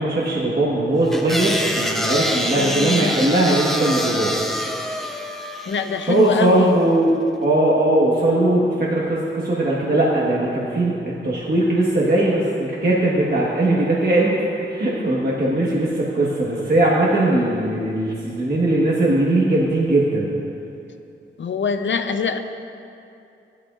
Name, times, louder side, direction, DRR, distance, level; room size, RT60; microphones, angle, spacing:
voice 1, 0.0-4.3 6.1-7.1 7.4-10.9 11.2-14.3 14.6-20.3, right 1 dB, 45° right, -6 dB, 1.4 m, -19 dB
sound 1, 1.1-6.5, equal, ahead, 0.7 m, -26 dB
voice 2, 2.4-3.2 5.7-6.8 21.4-22.4, left 5 dB, 65° left, 8 dB, 0.6 m, -23 dB
16.0 x 12.0 x 2.5 m, 2.7 s
wide cardioid pair, 125°, 21 cm